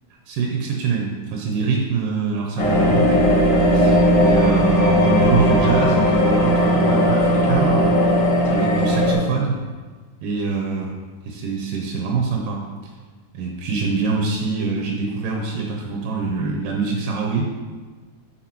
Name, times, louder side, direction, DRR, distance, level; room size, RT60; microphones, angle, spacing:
voice 1, 0.3-3.4 3.7-8.0 8.5-9.6 10.2-10.9 11.2-12.6 13.3-17.5, right 4 dB, 90° right, 0 dB, 2.4 m, -24 dB
sound 1, 2.6-9.1, equal, 55° left, 1.3 m, -17 dB
8.3 x 5.7 x 3.0 m, 1.4 s
omnidirectional pair, 3.8 m